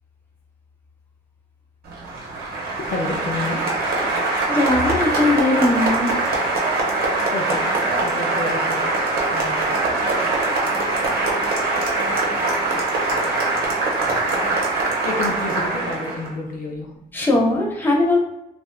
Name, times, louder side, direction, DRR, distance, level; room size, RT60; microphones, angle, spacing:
Applause, 1.9-16.3, right 2 dB, 65° right, 0.8 m, -22 dB
voice 1, 2.8-3.7 6.2-6.3 7.3-7.7 8.0-8.9 9.3-9.5 11.1-11.3 15.0-16.9, left 2 dB, 55° left, 0 dB, 0.5 m, -29 dB
voice 2, 4.5-6.1 17.1-18.2, left 2 dB, 10° left, -3 dB, 0.7 m, -19 dB
3.2 x 2.5 x 2.3 m, 0.87 s
cardioid pair, 140°, 17 cm